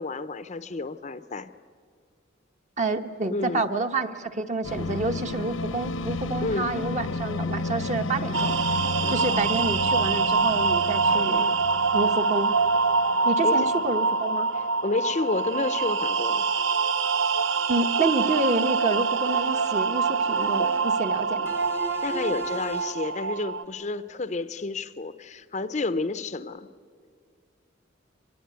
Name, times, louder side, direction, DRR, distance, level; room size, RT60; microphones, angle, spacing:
voice 1, 0.0-1.5 3.3-3.6 6.4-6.7 9.0-9.5 13.4-13.7 14.5-16.5 22.0-26.7, left 3 dB, 35° left, 12 dB, 0.6 m, -30 dB
voice 2, 2.8-8.6 9.1-11.5 11.9-12.6 13.2-14.5 17.7-21.5, right 2 dB, 35° right, 7 dB, 1.1 m, -28 dB
sound 1, 4.6-13.2, left 2 dB, 85° left, 1.2 m, -32 dB
sound 2, 8.3-23.6, right 4 dB, 80° right, 0.8 m, -25 dB
sound 3, 18.2-18.8 19.3-19.9 20.4-21.0 21.5-23.1, equal, 15° right, 0.8 m, -38 dB
25.0 x 20.5 x 9.4 m, 2.1 s
head